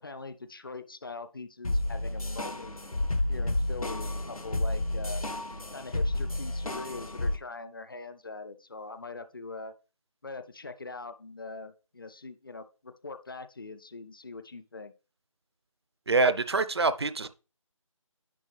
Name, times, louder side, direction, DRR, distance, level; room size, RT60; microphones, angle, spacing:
voice 1, 0.0-2.8 3.3-5.2 5.7-9.7 10.2-14.9, left 3 dB, 40° left, 0.5 m, -42 dB
sound 1, 1.6-7.4, left 1 dB, 90° left, 1.1 m, -31 dB
voice 2, 16.1-17.3, right 3 dB, 50° right, 0.5 m, -25 dB
10.0 x 4.4 x 3.2 m
figure-of-eight pair, 160°, 18 cm